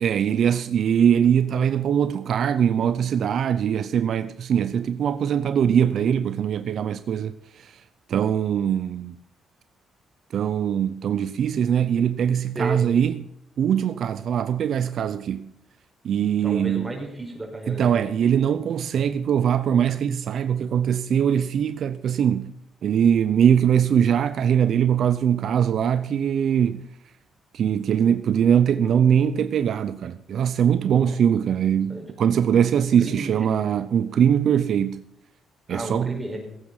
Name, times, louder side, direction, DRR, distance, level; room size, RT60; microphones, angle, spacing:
voice 1, 0.0-7.7 8.1-9.1 10.3-13.2 13.6-15.5 16.0-16.9 17.7-22.5 22.8-26.9 27.5-35.0 35.7-36.1, right 8 dB, 65° right, 0.6 m, -22 dB
voice 2, 16.4-18.0 30.8-31.2 31.9-32.1 33.0-33.7 35.7-36.5, right 1 dB, 10° right, 5.4 m, -33 dB
17.5 x 8.7 x 5.7 m
cardioid pair, 90°, 0 cm